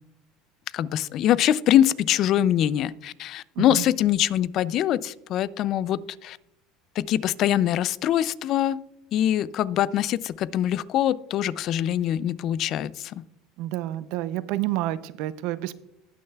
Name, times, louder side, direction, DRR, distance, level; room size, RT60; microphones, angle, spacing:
voice 1, 0.7-6.4 7.0-8.8 9.1-13.2, left 11 dB, 45° left, 19 dB, 0.3 m, -23 dB
voice 2, 13.6-15.7, right 15 dB, 65° right, 16 dB, 0.5 m, -29 dB
19.0 x 6.4 x 2.3 m, 0.88 s
supercardioid pair, 135°, 0 cm